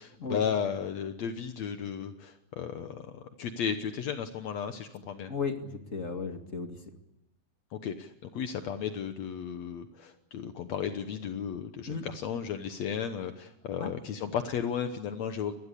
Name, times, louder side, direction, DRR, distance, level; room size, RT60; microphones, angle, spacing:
voice 1, 0.0-5.3 7.7-15.5, left 7 dB, 70° left, 8 dB, 2.3 m, -34 dB
voice 2, 5.3-6.8 11.9-12.0 13.8-13.9, left 4 dB, 30° left, 5 dB, 2.2 m, -34 dB
28.0 x 21.5 x 8.4 m, 0.85 s
omnidirectional pair, 3.4 m